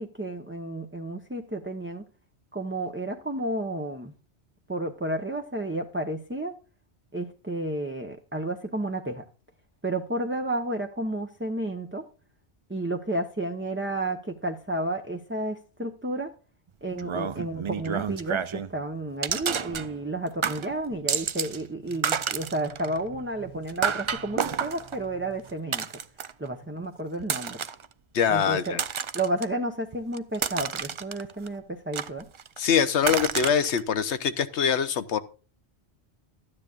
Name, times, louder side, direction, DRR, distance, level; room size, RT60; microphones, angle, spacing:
voice 1, 0.0-2.0 2.5-4.1 4.7-6.6 7.1-9.2 9.8-12.1 12.7-16.3 16.8-25.9 26.4-27.6 28.3-28.8 29.1-32.3, right 1 dB, 10° right, 3 dB, 0.8 m, -31 dB
sound 1, 17.0-18.7 19.2-20.2 20.4-21.6 21.9-26.5 27.2-27.8 28.4-29.4 29.9-31.5 31.9-32.6 33.0-33.8, right 6 dB, 50° right, 0.3 m, -31 dB
voice 2, 28.1-28.8 32.6-35.2, left 7 dB, 90° left, 12 dB, 1.1 m, -24 dB
13.5 x 9.9 x 2.4 m, 0.35 s
omnidirectional pair, 1.1 m